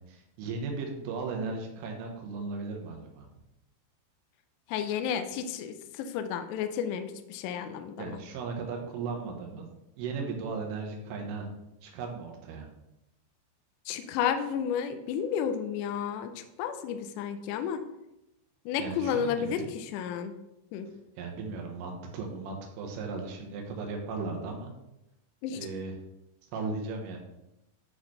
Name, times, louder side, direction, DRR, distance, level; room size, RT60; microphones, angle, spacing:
voice 1, 0.1-3.3 8.0-9.7 10.0-11.5 11.8-12.7 18.8-19.7 21.2-24.7 25.6-25.9 26.5-27.2, right 4 dB, 90° right, 1 dB, 3.7 m, -36 dB
voice 2, 4.7-8.2 13.9-17.8 18.7-20.3 20.7-20.9 25.4-25.6, left 8 dB, 85° left, 8 dB, 2.4 m, -32 dB
10.0 x 4.2 x 3.2 m, 0.90 s
omnidirectional pair, 5.6 m